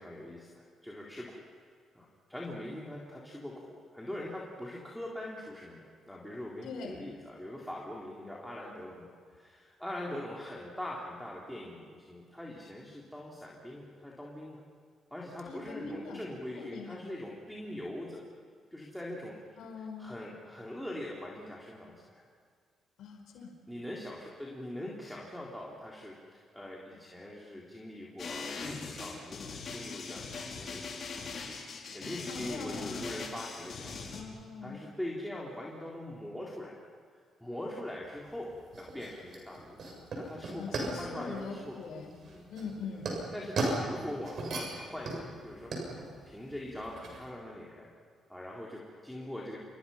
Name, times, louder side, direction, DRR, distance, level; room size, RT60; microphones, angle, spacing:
voice 1, 0.0-1.4 1.9-14.6 15.1-18.2 18.7-19.4 20.0-22.3 23.7-31.1 31.9-34.2 34.6-36.8 37.4-41.8 42.3-42.5 42.9-43.0 43.3-45.9 46.3-47.9 48.3-49.6, left 1 dB, 5° left, -4 dB, 3.9 m, -42 dB
voice 2, 6.6-7.0 15.5-16.2 16.5-17.0 19.6-20.2 23.0-23.5 32.3-33.1 34.1-34.8 40.6-42.1 42.5-43.1, left 4 dB, 80° left, 3 dB, 5.0 m, -42 dB
sound 1, 28.2-34.2, left 4 dB, 50° left, 5.1 m, -41 dB
sound 2, 38.0-47.3, right 2 dB, 60° right, 7.2 m, -38 dB
28.0 x 23.5 x 5.8 m, 2.1 s
cardioid pair, 90°, 0 cm